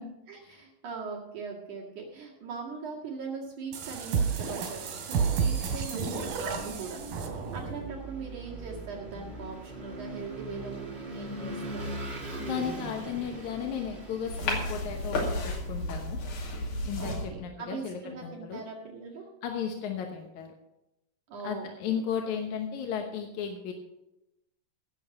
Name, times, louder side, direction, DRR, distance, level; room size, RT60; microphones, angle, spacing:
voice 1, 0.0-7.0 7.5-11.9 17.0-19.2 21.3-21.7 21.9-22.0, right 4 dB, 60° right, -3 dB, 3.3 m, -40 dB
sound 1, 3.7-7.9, right 6 dB, 85° right, 4.0 m, -31 dB
Vehicle / Engine, 6.3-16.0, right 2 dB, 20° right, 1.9 m, -41 dB
voice 2, 12.2-16.2 16.8-18.6 19.4-20.5 21.4-23.7, left 7 dB, 65° left, 3 dB, 2.1 m, -35 dB
sound 2, 14.3-17.3, left 1 dB, 85° left, 4.4 m, -32 dB
17.5 x 7.1 x 5.3 m, 0.93 s
omnidirectional pair, 4.1 m